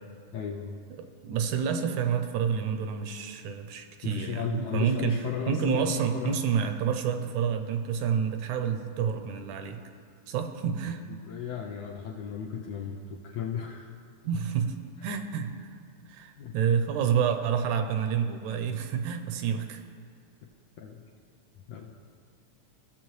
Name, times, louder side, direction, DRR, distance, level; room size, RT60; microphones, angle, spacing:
voice 1, 0.3-0.8 4.0-6.4 11.1-13.9 16.4-16.5 20.8-21.0 21.7-21.9, left 7 dB, 85° left, -1 dB, 1.5 m, -35 dB
voice 2, 0.9-5.2 5.5-9.8 10.3-11.0 14.2-14.8 15.0-15.7 16.1-19.8, right 7 dB, 80° right, 8 dB, 1.9 m, -29 dB
16.5 x 7.2 x 3.1 m, 2.2 s
omnidirectional pair, 3.5 m